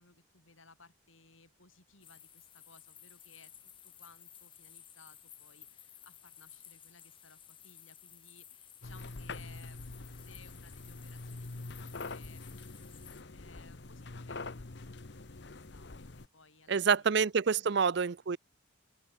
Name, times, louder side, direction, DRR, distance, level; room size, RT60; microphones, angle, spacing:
voice 1, 0.0-17.2 17.6-17.8, left 4 dB, 70° left, 7.3 m, -61 dB
sound 1, 2.0-13.2, left 9 dB, 25° left, 6.6 m, -55 dB
sound 2, 8.8-16.3, left 3 dB, 55° left, 1.0 m, -45 dB
voice 2, 16.7-18.4, right 6 dB, 55° right, 0.5 m, -27 dB
open air
head